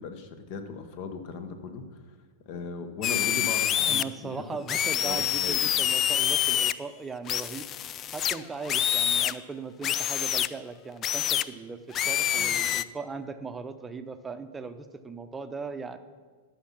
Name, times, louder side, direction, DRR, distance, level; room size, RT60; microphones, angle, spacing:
voice 1, 0.0-2.0 2.4-4.4 5.0-5.6 12.4-12.6, left 5 dB, 50° left, 8 dB, 1.2 m, -38 dB
sound 1, 3.0-4.0 4.7-6.7 7.3-9.3 9.8-10.5 11.0-11.4 11.9-12.8, left 10 dB, 35° left, 0.3 m, -26 dB
voice 2, 3.8-7.7 8.1-16.0, right 4 dB, 15° right, 9 dB, 0.7 m, -38 dB
13.0 x 5.8 x 6.0 m, 1.5 s
hypercardioid pair, 100°, 0 cm